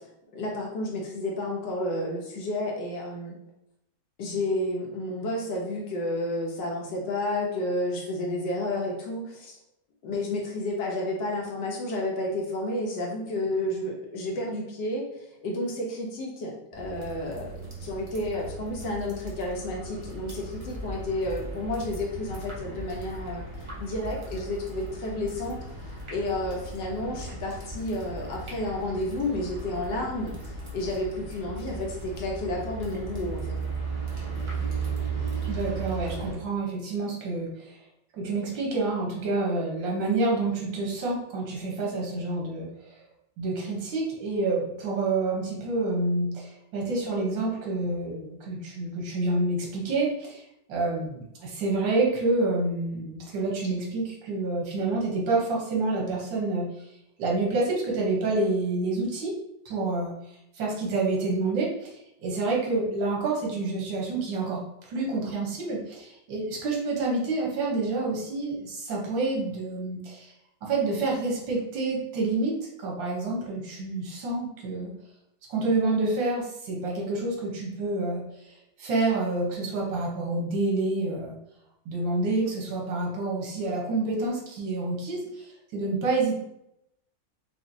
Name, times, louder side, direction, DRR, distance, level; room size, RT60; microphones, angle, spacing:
voice 1, 0.3-3.4 4.2-9.6 10.0-15.1 15.4-23.4 23.8-25.6 26.1-30.3 30.7-33.4, left 1 dB, 80° left, -1 dB, 1.6 m, -31 dB
sound 1, 16.7-36.3, right 3 dB, 25° right, 0.6 m, -36 dB
voice 2, 35.5-37.8 38.1-43.0 43.4-50.4 50.7-56.7 57.2-59.4 59.7-60.1 60.6-64.6 64.9-70.3 70.6-74.9 75.5-81.4 81.9-86.4, right 3 dB, 80° right, -2 dB, 1.7 m, -28 dB
5.0 x 2.6 x 2.7 m, 0.81 s
omnidirectional pair, 2.0 m